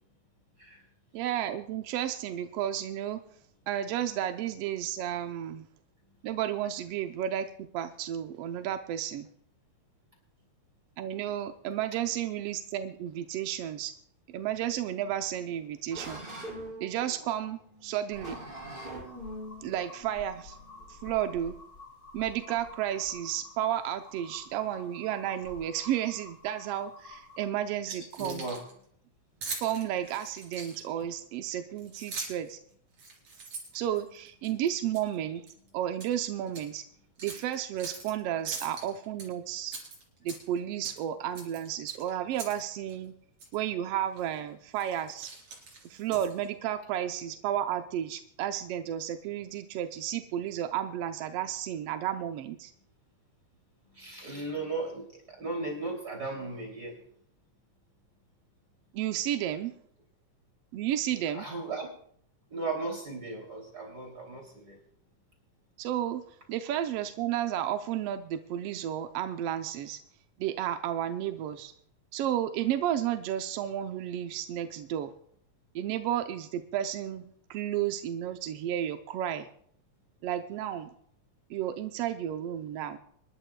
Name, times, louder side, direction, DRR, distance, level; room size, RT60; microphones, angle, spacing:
voice 1, 1.1-3.2 3.7-5.7 6.2-9.3 11.0-13.9 14.3-16.2 16.8-18.3 19.6-20.6 20.9-21.6 22.1-28.4 29.6-32.6 33.7-35.4 35.7-36.8 37.2-39.8 40.2-43.1 43.5-45.3 45.8-52.7 58.9-59.7 60.7-61.5 65.8-66.2 66.5-70.0 70.4-71.7 72.1-75.1 75.7-79.5 80.2-80.9 81.5-83.0, right 11 dB, 75° right, 7 dB, 1.4 m, -32 dB
sound 1, 14.9-21.5, right 1 dB, 15° right, 5.3 m, -44 dB
sound 2, 18.1-27.5, left 2 dB, 40° left, 1.6 m, -50 dB
voice 2, 27.9-28.7 53.9-57.0 61.3-61.9 62.5-64.8, right 3 dB, 30° right, 0 dB, 3.0 m, -36 dB
Keys jangling, 28.0-28.7 29.4-31.0 31.8-32.5 32.9-34.5 34.9-35.1 35.5-36.1 36.5-36.6 37.2-38.1 38.4-39.3 39.7-40.6 40.8-41.0 41.3-42.6 42.9-43.0 43.4-43.6 44.2-44.4 44.7-46.5, right 4 dB, 60° right, 4.7 m, -42 dB
26.0 x 11.5 x 2.2 m, 0.64 s
omnidirectional pair, 3.4 m